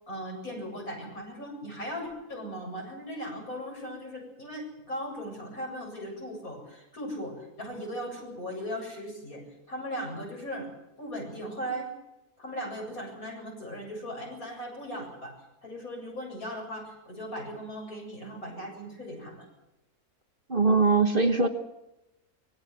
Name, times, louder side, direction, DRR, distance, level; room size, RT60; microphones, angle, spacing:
voice 1, 0.1-10.7 11.0-11.9 12.4-15.3 15.6-19.5, equal, 65° left, 1 dB, 8.3 m, -38 dB
voice 2, 20.5-21.5, right 4 dB, 35° right, 6 dB, 1.5 m, -21 dB
25.0 x 20.5 x 6.1 m, 0.90 s
omnidirectional pair, 1.6 m